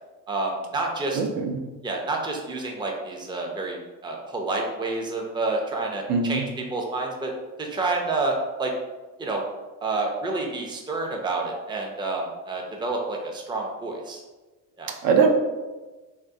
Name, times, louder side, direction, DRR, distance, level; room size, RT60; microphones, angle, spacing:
voice 1, 0.3-1.2 1.8-7.3 7.6-8.7 9.2-9.4 9.8-14.2 14.8-14.9, right 3 dB, 15° right, 1 dB, 0.5 m, -29 dB
voice 2, 1.1-1.6 6.1-6.4 15.0-15.3, right 5 dB, 70° right, 3 dB, 0.6 m, -21 dB
3.5 x 2.4 x 2.6 m, 1.2 s
cardioid pair, 95°, 37 cm